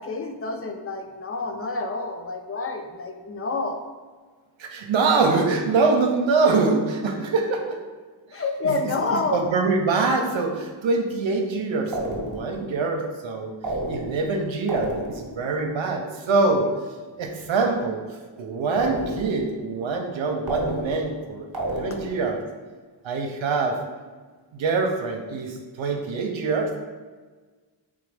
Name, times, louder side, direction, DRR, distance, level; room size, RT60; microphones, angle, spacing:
voice 1, 0.0-3.8 8.3-9.4, left 3 dB, 30° left, 5 dB, 0.4 m, -28 dB
voice 2, 4.6-7.8 8.3-8.9 9.3-13.5 13.9-16.7 17.2-18.0 18.4-21.4 21.7-22.4 23.0-23.8 24.5-26.8, right 3 dB, 80° right, 2 dB, 0.6 m, -24 dB
sound 1, 11.9-12.6 13.6-14.4 14.7-15.4 18.8-19.5 20.5-21.2 21.5-22.3, right 1 dB, 50° right, 0.9 m, -30 dB
3.6 x 2.5 x 3.2 m, 1.4 s
cardioid pair, 55°, 47 cm